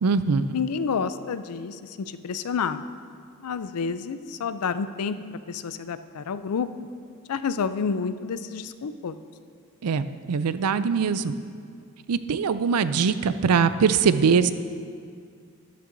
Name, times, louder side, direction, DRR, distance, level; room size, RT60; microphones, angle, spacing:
voice 1, 0.0-0.5 9.8-11.3 12.1-14.5, right 5 dB, 90° right, 13 dB, 0.4 m, -22 dB
voice 2, 0.5-2.8 3.4-5.2 5.5-6.7 7.3-9.2, left 5 dB, 80° left, 12 dB, 0.4 m, -29 dB
13.0 x 11.5 x 2.6 m, 2.2 s
head